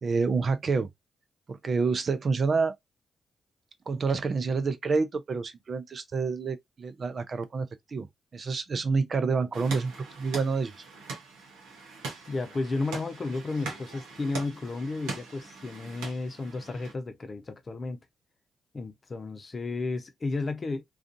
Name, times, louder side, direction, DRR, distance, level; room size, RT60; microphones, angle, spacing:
voice 1, 0.0-0.9 1.5-2.7 3.9-8.1 8.3-10.7, right 4 dB, 55° right, 0.5 m, -28 dB
sound 1, 9.5-16.9, right 3 dB, 85° right, 0.9 m, -41 dB
voice 2, 12.3-18.0 18.7-20.8, left 3 dB, 45° left, 0.7 m, -33 dB
2.4 x 2.4 x 2.5 m
hypercardioid pair, 45°, 0 cm